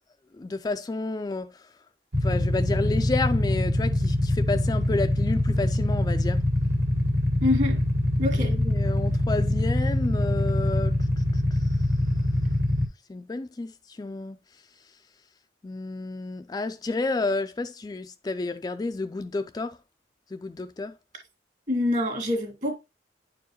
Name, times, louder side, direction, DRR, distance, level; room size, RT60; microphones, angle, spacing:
voice 1, 0.3-1.7 2.2-6.4 8.3-11.9 13.1-14.4 15.6-19.8 20.3-21.0, left 3 dB, 20° left, 0.3 m, -31 dB
Motorcycle / Idling, 2.1-12.8, left 1 dB, 75° right, 2.0 m, -24 dB
voice 2, 7.4-7.8 8.2-8.5 21.7-22.8, left 2 dB, 45° right, 1.8 m, -25 dB
9.9 x 4.6 x 2.9 m
head